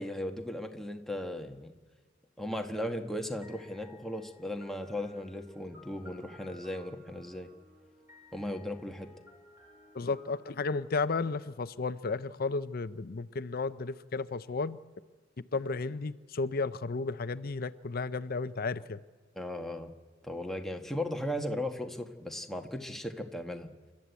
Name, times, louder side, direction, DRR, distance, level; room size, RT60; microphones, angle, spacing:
voice 1, 0.0-1.7 2.4-7.5 8.3-9.1 19.3-19.9 20.2-23.7, left 1 dB, ahead, 4 dB, 1.4 m, -37 dB
sound 1, 2.5-12.3, left 2 dB, 15° right, 5.6 m, -58 dB
voice 2, 9.9-14.8 15.5-19.0, left 4 dB, 50° left, 14 dB, 0.6 m, -33 dB
28.5 x 13.0 x 8.3 m, 1.4 s
head